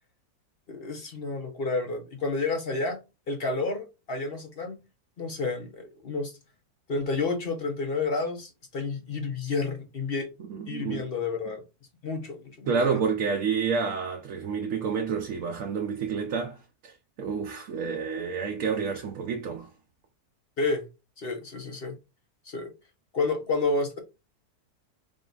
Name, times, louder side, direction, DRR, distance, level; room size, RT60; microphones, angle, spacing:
voice 1, 0.7-3.0 3.3-4.8 5.2-6.3 6.9-10.3 10.7-11.6 12.0-12.7 20.6-20.9 21.2-22.0 22.5-22.7 23.1-24.0, left 3 dB, 50° left, 0.8 m, -30 dB
voice 2, 10.5-11.1 12.7-19.7, right 5 dB, 60° right, 1.0 m, -29 dB
4.0 x 3.8 x 2.4 m
omnidirectional pair, 1.7 m